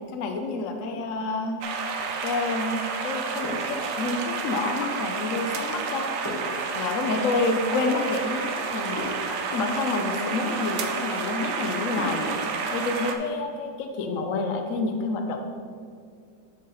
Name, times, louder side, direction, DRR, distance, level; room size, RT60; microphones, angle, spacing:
voice 1, 0.1-1.6 2.2-6.2 6.7-9.1 9.5-12.4 12.7-15.4, left 3 dB, 65° left, 4 dB, 0.8 m, -28 dB
sound 1, 1.6-13.2, right 5 dB, 65° right, 0.8 m, -30 dB
sound 2, 3.4-4.9 6.2-8.1 8.6-8.7 8.9-10.5 11.1-11.2 11.9-13.8 14.2-14.4, left 1 dB, 15° left, 1.3 m, -39 dB
7.5 x 5.6 x 4.0 m, 2.3 s
omnidirectional pair, 2.0 m